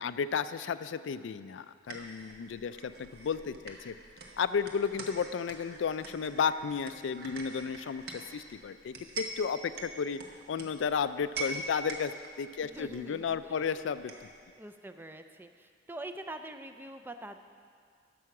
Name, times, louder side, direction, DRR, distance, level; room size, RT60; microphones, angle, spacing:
voice 1, 0.0-3.9 4.4-10.2 10.5-12.1 12.4-14.1, left 6 dB, 75° left, 13 dB, 0.4 m, -33 dB
sound 1, 1.9-14.4, right 2 dB, 55° right, 1.1 m, -45 dB
voice 2, 12.6-13.8 14.6-17.4, right 1 dB, 10° right, 7 dB, 0.4 m, -45 dB
11.0 x 7.0 x 5.9 m, 2.1 s
head